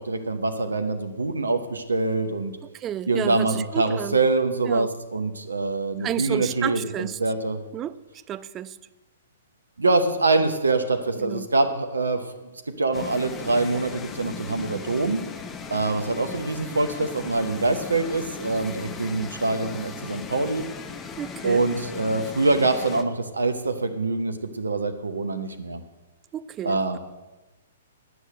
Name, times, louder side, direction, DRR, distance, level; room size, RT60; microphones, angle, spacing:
voice 1, 0.0-2.5 3.1-7.6 9.8-12.2 12.8-15.2 15.7-20.6 21.4-25.8 26.6-27.0, right 3 dB, 70° right, 0.8 m, -24 dB
voice 2, 2.7-4.2 4.7-4.9 6.0-7.2 7.7-8.0 8.3-8.8 11.2-11.5 21.2-21.6 26.3-27.0, right 10 dB, 20° right, 0.4 m, -31 dB
sound 1, 12.9-23.0, left 5 dB, 15° left, 0.7 m, -37 dB
9.6 x 6.3 x 7.8 m
figure-of-eight pair, 115°, 0 cm